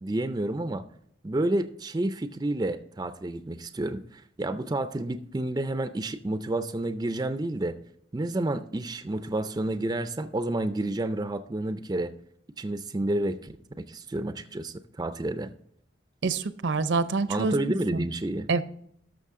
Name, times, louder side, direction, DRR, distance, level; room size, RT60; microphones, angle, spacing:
voice 1, 0.0-0.8 1.2-7.8 8.1-12.1 12.6-15.5 17.3-18.5, right 1 dB, 20° right, 11 dB, 0.4 m, -30 dB
voice 2, 16.2-18.1 18.5-18.6, right 3 dB, 70° right, 14 dB, 0.6 m, -27 dB
13.0 x 6.3 x 3.6 m, 0.68 s
head